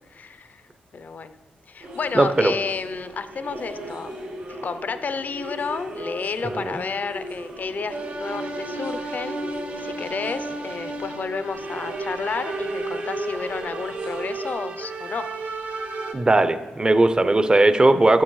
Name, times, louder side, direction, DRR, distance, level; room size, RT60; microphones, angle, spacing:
voice 1, 0.1-0.6 0.9-1.4 1.7-4.1 4.5-15.3, left 5 dB, 50° left, 12 dB, 0.5 m, -31 dB
sound 1, 1.8-14.5, right 1 dB, 90° right, 2.2 m, -37 dB
voice 2, 2.1-2.5 6.4-6.7 16.1-18.2, right 2 dB, 25° right, 11 dB, 0.6 m, -18 dB
sound 2, 7.9-16.1, right 2 dB, 55° right, 0.9 m, -33 dB
10.0 x 7.2 x 3.1 m, 1.3 s
cardioid pair, 65°, 3 cm